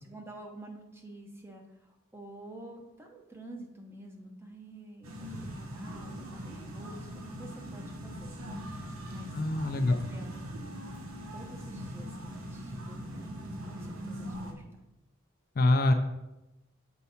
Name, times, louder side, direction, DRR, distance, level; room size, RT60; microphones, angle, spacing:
voice 1, 0.0-8.4 9.1-9.4 9.9-10.3 11.3-14.8, right 1 dB, 10° right, 2 dB, 0.7 m, -49 dB
sound 1, 5.0-14.5, equal, 75° right, 0.9 m, -41 dB
voice 2, 9.3-10.0 15.6-15.9, left 2 dB, 45° left, 6 dB, 0.4 m, -24 dB
7.0 x 4.6 x 4.2 m, 0.93 s
head